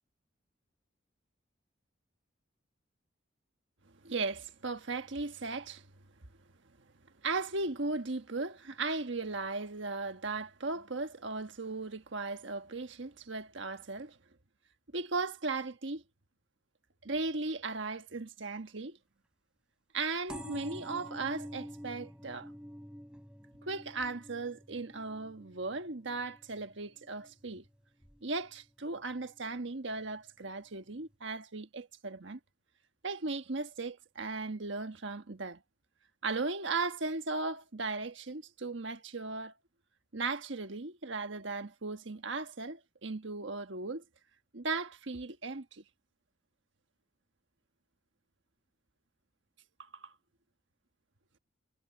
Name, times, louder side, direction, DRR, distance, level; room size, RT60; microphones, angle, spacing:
voice 1, 4.0-5.8 7.2-14.2 14.9-16.0 17.0-19.0 19.9-22.5 23.7-27.6 28.2-32.4 33.0-35.6 36.2-39.5 40.1-44.0 44.5-45.8 49.8-50.1, right 3 dB, 70° right, 1.3 m, -37 dB
sound 1, 20.3-27.5 28.0-28.5 29.3-29.4 29.6-29.7 30.0-30.1, equal, 5° right, 6.6 m, -48 dB
head